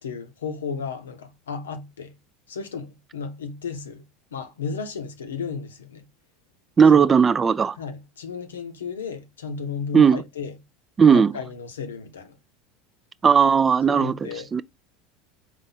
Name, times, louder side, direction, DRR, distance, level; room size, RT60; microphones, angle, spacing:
voice 1, 0.0-2.1 2.5-4.0 4.3-6.1 6.9-7.2 7.8-10.6 11.1-12.4 13.9-14.6, left 5 dB, 85° left, 0.7 m, -34 dB
voice 2, 6.8-7.8 9.9-10.2 11.0-11.3 13.2-14.6, right 6 dB, 25° right, 0.3 m, -17 dB
4.1 x 2.5 x 3.9 m
hypercardioid pair, 80°, 0 cm